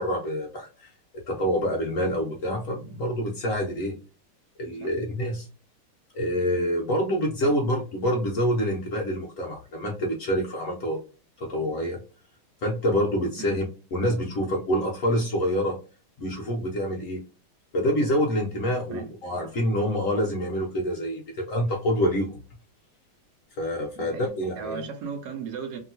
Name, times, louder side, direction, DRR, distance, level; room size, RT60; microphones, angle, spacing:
voice 1, 0.0-4.0 4.6-5.5 6.1-11.0 11.4-12.0 12.6-13.6 13.9-15.8 16.2-17.2 17.7-22.4 23.6-24.8, equal, 70° left, 0.7 m, -26 dB
voice 2, 24.0-25.8, right 6 dB, 65° right, 1.1 m, -36 dB
2.9 x 2.7 x 2.7 m
omnidirectional pair, 2.2 m